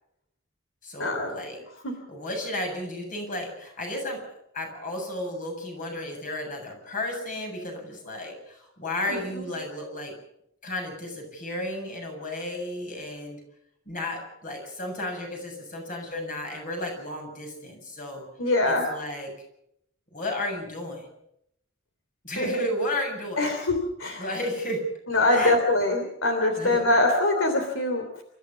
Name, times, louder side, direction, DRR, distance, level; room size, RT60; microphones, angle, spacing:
voice 1, 0.8-1.6 2.1-10.2 10.6-13.4 13.9-18.3 18.7-19.3 20.1-21.1 22.2-23.5 24.2-24.9 25.2-25.5 26.6-26.9, left 1 dB, 45° left, 2 dB, 7.7 m, -33 dB
voice 2, 9.1-9.4 18.4-18.8 22.4-22.5 23.4-23.7 24.0-24.2 25.1-28.2, left 2 dB, 75° left, 4 dB, 3.1 m, -23 dB
28.5 x 14.5 x 7.1 m, 0.76 s
head